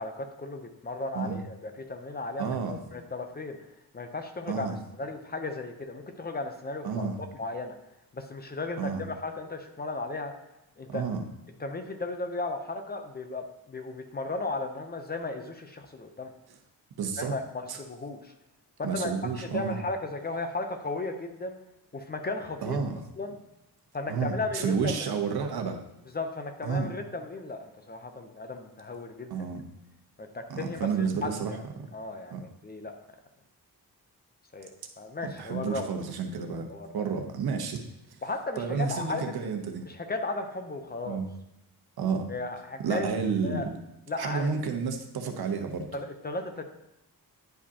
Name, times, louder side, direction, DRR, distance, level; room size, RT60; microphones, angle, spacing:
voice 1, 0.0-3.6 3.9-4.7 5.0-7.1 7.4-7.7 8.1-10.3 10.8-11.1 11.6-16.3 17.2-18.3 18.8-21.6 21.9-22.8 23.2-23.3 23.9-25.0 26.1-29.3 30.2-31.6 31.9-32.9 34.5-34.7 35.0-35.9 36.7-37.1 38.2-39.3 39.9-41.2 42.3-43.1 43.4-43.7 44.1-44.5 45.9-46.6, left 2 dB, 25° left, 6 dB, 0.5 m, -35 dB
voice 2, 2.4-2.8 4.5-4.8 6.8-7.2 8.8-9.1 10.9-11.2 17.0-17.3 17.7-17.8 18.8-19.8 22.6-23.0 24.1-25.8 26.6-26.9 29.3-29.6 30.5-31.5 32.3-32.4 35.4-36.7 36.9-37.8 38.6-39.9 41.1-41.3 42.0-42.3 42.8-43.7 44.2-45.9, right 5 dB, 75° right, 5 dB, 1.0 m, -30 dB
10.0 x 5.0 x 2.7 m, 0.91 s
wide cardioid pair, 170°, 37 cm